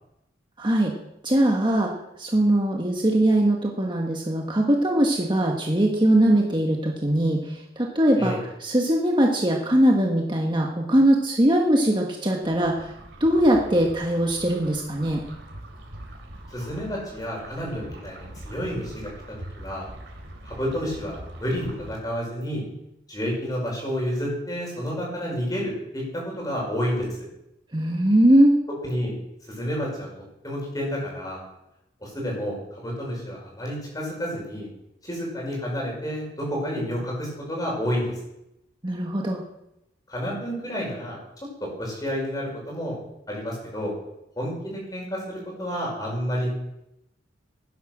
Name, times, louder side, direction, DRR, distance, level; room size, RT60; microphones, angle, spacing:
voice 1, 0.6-1.0 1.2-1.9 2.2-8.3 8.6-12.9 13.2-15.2 27.7-28.6 38.8-39.4, right 1 dB, 25° right, 0 dB, 1.5 m, -21 dB
sound 1, 12.4-21.9, right 1 dB, 90° right, 3.4 m, -42 dB
voice 2, 16.5-19.9 20.4-22.6 23.1-27.3 28.8-29.1 29.5-30.1 30.4-31.4 32.0-34.7 35.0-38.1 40.1-41.2 41.6-43.0 43.3-43.9 44.4-46.5, equal, 20° left, -2 dB, 5.9 m, -30 dB
16.5 x 10.5 x 6.3 m, 0.87 s
head